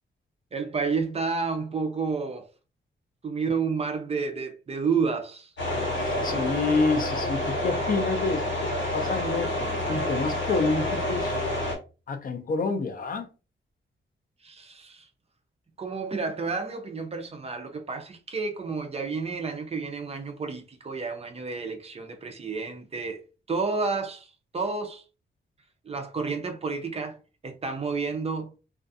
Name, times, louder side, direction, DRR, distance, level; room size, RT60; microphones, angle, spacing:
voice 1, 0.5-2.5 3.2-5.5 14.4-15.1 15.8-23.2 23.5-25.0 25.8-27.2 27.4-28.5, right 4 dB, 30° right, 0.4 m, -30 dB
sound 1, 5.6-11.7, left 1 dB, 65° left, 1.1 m, -28 dB
voice 2, 6.0-9.5 9.9-11.4 12.1-13.3, left 4 dB, 45° left, 0.4 m, -28 dB
2.4 x 2.3 x 2.5 m
wide cardioid pair, 170°, 21 cm